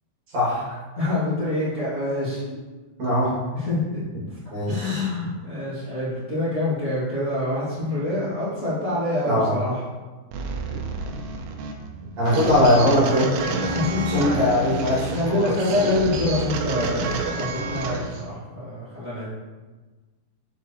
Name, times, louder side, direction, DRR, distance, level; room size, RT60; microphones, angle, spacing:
voice 1, 0.3-0.8 3.0-3.4 4.5-5.1 9.2-9.6 12.2-13.3 14.1-15.5, left 1 dB, 45° right, -8 dB, 3.0 m, -21 dB
voice 2, 0.9-2.6 3.5-4.0 4.3-4.4 4.7-9.8 10.6-10.7 12.3-12.4 13.5-14.7 15.1-19.3, left 2 dB, 30° left, -12 dB, 1.6 m, -26 dB
sound 1, 10.3-18.3, right 3 dB, 85° right, 2.1 m, -29 dB
7.3 x 7.1 x 3.0 m, 1.3 s
omnidirectional pair, 5.1 m